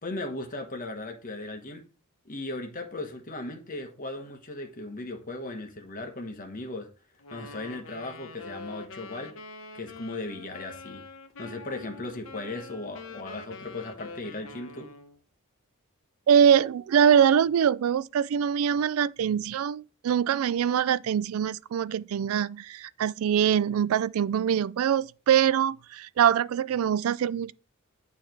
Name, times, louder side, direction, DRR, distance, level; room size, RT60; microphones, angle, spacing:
voice 1, 0.0-1.8 2.2-6.9 7.3-9.4 9.7-11.0 11.4-14.9, left 2 dB, 40° left, 1.4 m, -37 dB
Wind instrument woodwind instrument, 7.2-15.2, left 3 dB, 70° left, 0.9 m, -45 dB
voice 2, 16.3-27.5, right 8 dB, 80° right, 0.3 m, -23 dB
9.1 x 3.5 x 4.6 m
head